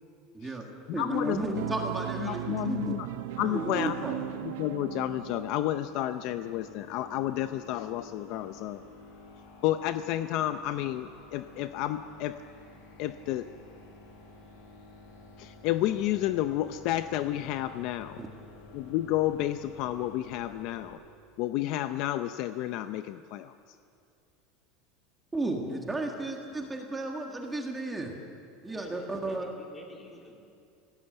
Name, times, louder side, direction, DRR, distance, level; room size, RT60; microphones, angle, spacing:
voice 1, 0.3-0.7 0.9-3.0 3.4-4.2 18.2-18.3 25.3-28.1 28.6-29.5, right 2 dB, 10° right, 2 dB, 1.7 m, -33 dB
voice 2, 0.9-1.4 2.2-3.1 3.4-4.1 4.4-8.8 9.6-12.4 13.0-13.5 15.4-18.2 18.7-21.0 21.4-23.5, left 13 dB, 45° left, 10 dB, 0.6 m, -31 dB
sound 1, 1.5-6.7, right 13 dB, 85° right, 0.9 m, -37 dB
sound 2, 6.2-20.9, left 3 dB, 85° left, 7.4 m, -51 dB
voice 3, 28.7-30.4, left 2 dB, 15° left, 0 dB, 3.2 m, -49 dB
25.5 x 17.5 x 7.9 m, 2.5 s
supercardioid pair, 170°, 0 cm